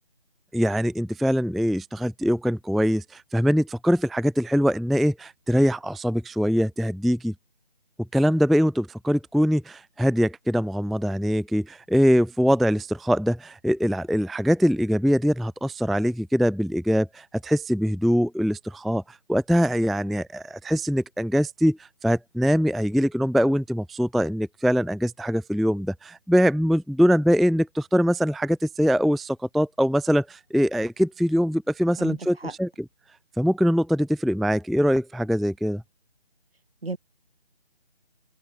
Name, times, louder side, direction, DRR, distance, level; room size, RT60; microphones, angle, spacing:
voice 1, 0.5-7.3 8.1-32.7 33.4-35.8, equal, ahead, 0.4 m, -23 dB
voice 2, 32.0-32.5 36.8-37.0, right 3 dB, 65° right, 6.8 m, -34 dB
figure-of-eight pair, 160°, 32 cm